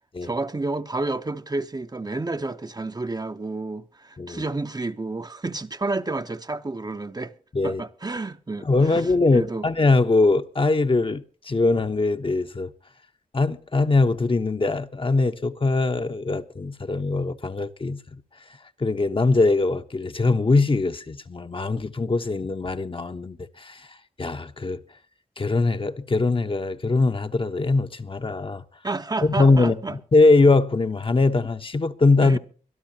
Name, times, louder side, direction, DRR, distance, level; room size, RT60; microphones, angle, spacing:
voice 1, 0.2-7.3 7.6-9.1 9.3-9.7 28.8-30.0 32.2-32.4, right 2 dB, 30° right, 0.8 m, -30 dB
voice 2, 8.6-12.7 13.3-18.0 18.8-23.9 24.2-24.8 25.4-28.6 29.2-32.4, left 3 dB, 40° left, 1.0 m, -22 dB
23.5 x 12.5 x 2.9 m
cardioid pair, 55°, 14 cm